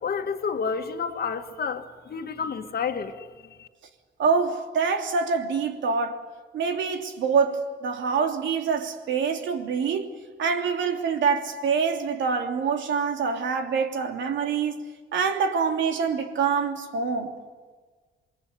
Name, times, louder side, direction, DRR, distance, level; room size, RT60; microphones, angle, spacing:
voice 1, 0.0-3.3 3.6-3.7, left 6 dB, 50° left, 2.3 m, -30 dB
voice 2, 4.2-6.2 6.5-10.1 10.4-14.9 15.1-17.3, right 5 dB, 70° right, 3.1 m, -25 dB
28.0 x 21.5 x 9.6 m
cardioid pair, 90°, 20 cm